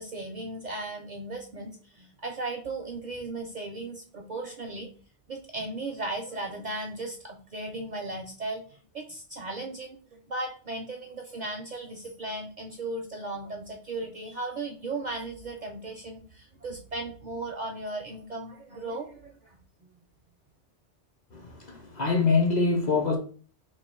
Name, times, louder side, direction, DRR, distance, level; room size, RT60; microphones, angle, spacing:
voice 1, 0.0-4.9 5.3-19.6, right 2 dB, 55° right, 0.5 m, -36 dB
voice 2, 21.3-23.2, left 4 dB, 45° left, 0.7 m, -25 dB
3.1 x 2.3 x 4.3 m
omnidirectional pair, 1.2 m